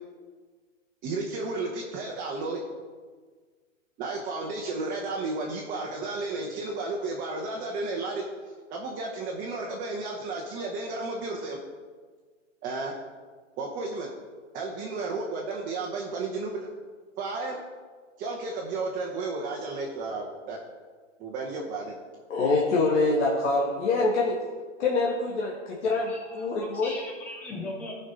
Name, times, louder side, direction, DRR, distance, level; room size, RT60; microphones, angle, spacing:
voice 1, 1.0-2.6 4.0-8.2 8.7-11.6 12.6-12.9 13.6-14.1 14.5-16.7 17.2-17.6 18.2-20.6 21.2-22.0, right 3 dB, 20° right, -1 dB, 1.0 m, -33 dB
voice 2, 22.3-24.4 24.8-26.9, left 3 dB, 60° left, -2 dB, 1.6 m, -25 dB
voice 3, 25.8-27.9, left 2 dB, 5° left, 0 dB, 0.3 m, -39 dB
14.5 x 5.5 x 4.0 m, 1.5 s
hypercardioid pair, 140°, 38 cm